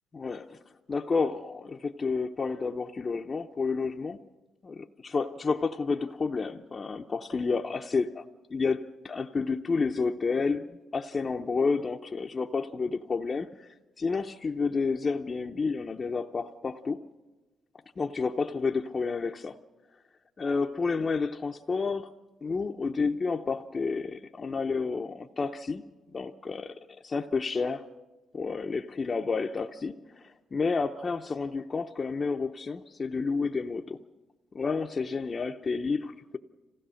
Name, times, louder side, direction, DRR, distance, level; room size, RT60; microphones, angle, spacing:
voice 1, 0.1-0.6 0.9-4.2 4.6-8.2 8.5-13.5 14.0-17.0 18.0-19.6 20.4-22.1 22.4-25.8 26.1-26.8 27.0-27.8 28.3-34.0 34.5-36.4, left 4 dB, 35° left, 3 dB, 0.6 m, -30 dB
26.5 x 16.0 x 6.3 m, 1.2 s
cardioid pair, 90°, 0 cm